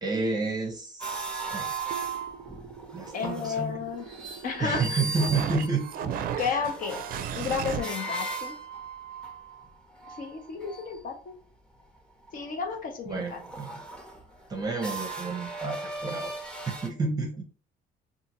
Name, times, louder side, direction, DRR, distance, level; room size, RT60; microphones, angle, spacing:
voice 1, 0.0-2.1 2.9-3.9 4.6-5.9 6.5-6.7 13.1-13.8 14.5-16.4 16.8-17.4, right 3 dB, 25° right, 2 dB, 0.7 m, -31 dB
sound 1, 1.0-3.6 3.9-11.0 12.3-12.8 13.1-16.9, right 3 dB, 5° left, 0.8 m, -38 dB
sound 2, 1.9-7.8, right 8 dB, 60° right, 0.4 m, -36 dB
voice 2, 3.1-4.1 4.4-5.0 6.0-6.1 6.4-7.0 7.3-8.6 10.2-11.3 12.3-13.4, left 6 dB, 55° left, 3 dB, 0.9 m, -32 dB
2.6 x 2.5 x 2.9 m, 0.36 s
cardioid pair, 110°, 17 cm